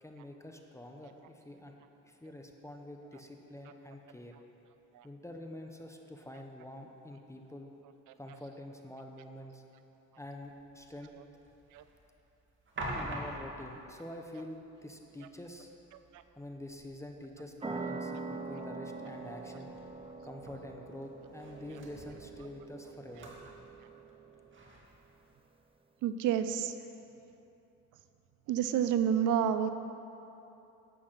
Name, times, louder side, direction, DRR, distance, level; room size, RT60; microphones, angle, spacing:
voice 1, 0.0-1.8 2.0-4.3 5.0-7.7 8.2-9.6 10.2-11.1 12.9-15.7 16.4-19.7 20.2-23.3, left 1 dB, 10° left, 3 dB, 1.0 m, -46 dB
sound 1, 10.3-25.6, right 1 dB, 40° right, 2.3 m, -48 dB
sound 2, 17.6-24.8, right 4 dB, 20° right, 0.8 m, -44 dB
voice 2, 26.0-26.7 28.5-29.7, right 9 dB, 85° right, 10 dB, 0.6 m, -29 dB
11.5 x 8.5 x 5.9 m, 2.9 s
cardioid pair, 90°, 30 cm